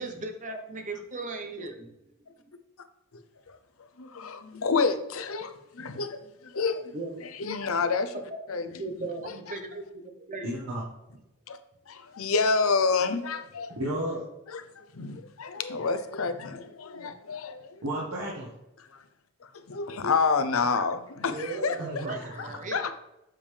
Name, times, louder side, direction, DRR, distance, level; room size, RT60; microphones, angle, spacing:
voice 1, 0.0-1.9 6.9-7.1 8.6-10.5 21.2-22.9, right 3 dB, 35° right, 1.0 m, -37 dB
voice 2, 4.0-6.9 7.4-8.1 8.5-8.7 11.5-11.6 11.9-13.7 14.5-17.8 19.4-22.1 22.4-22.9, left 4 dB, 70° left, 0.7 m, -29 dB
voice 3, 10.4-10.8 13.7-14.2 17.8-18.5 21.8-22.6, right 1 dB, 85° right, 1.5 m, -33 dB
7.7 x 5.1 x 3.4 m
head